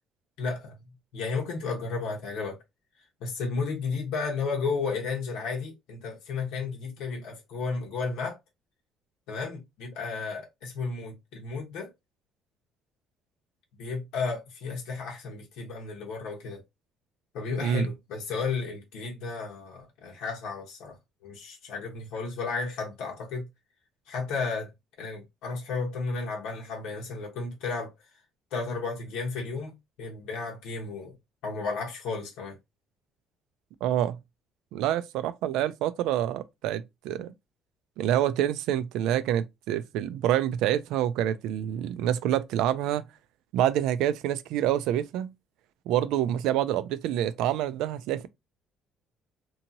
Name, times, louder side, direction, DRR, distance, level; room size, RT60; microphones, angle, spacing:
voice 1, 0.4-0.7 1.1-2.6 3.2-8.4 9.3-11.9 13.8-16.6 17.3-21.0 21.2-23.4 24.1-24.7 25.0-27.9 28.5-31.2 31.4-32.6, left 4 dB, 90° left, 1.0 m, -33 dB
voice 2, 33.8-34.2 34.7-37.3 38.0-43.0 43.5-45.3 45.9-48.3, right 11 dB, 85° right, 0.3 m, -27 dB
2.9 x 2.7 x 2.6 m
cardioid pair, 175°, 0 cm